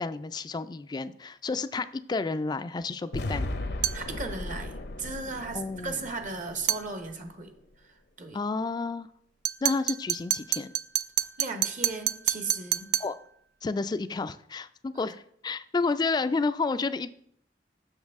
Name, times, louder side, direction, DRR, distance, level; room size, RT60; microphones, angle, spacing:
voice 1, 0.0-3.5 5.5-6.0 8.3-9.1 9.6-10.7 13.0-13.1 13.6-17.1, left 4 dB, 25° left, 13 dB, 0.3 m, -30 dB
sound 1, 3.1-7.3, left 2 dB, 70° left, 0.7 m, -36 dB
sound 2, 3.8-4.1 6.7-6.9 9.4-13.2, right 12 dB, 65° right, 0.3 m, -28 dB
voice 2, 3.9-7.5 7.8-8.4 11.4-12.9, right 3 dB, 50° right, 7 dB, 0.9 m, -36 dB
7.3 x 6.5 x 3.6 m, 0.67 s
head